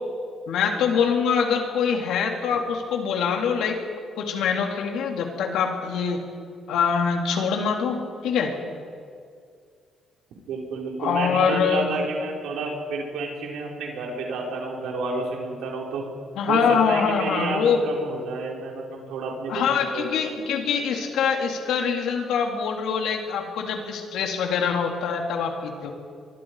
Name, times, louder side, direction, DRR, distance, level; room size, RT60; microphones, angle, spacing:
voice 1, 0.5-3.8 4.2-6.2 6.7-8.5 11.0-12.0 16.4-17.8 19.5-25.9, left 6 dB, 80° left, 2 dB, 3.3 m, -24 dB
voice 2, 10.5-16.0 16.5-16.6 16.9-20.1, right 3 dB, 85° right, -1 dB, 5.2 m, -30 dB
25.0 x 23.5 x 5.0 m, 2.2 s
cardioid pair, 90°, 0 cm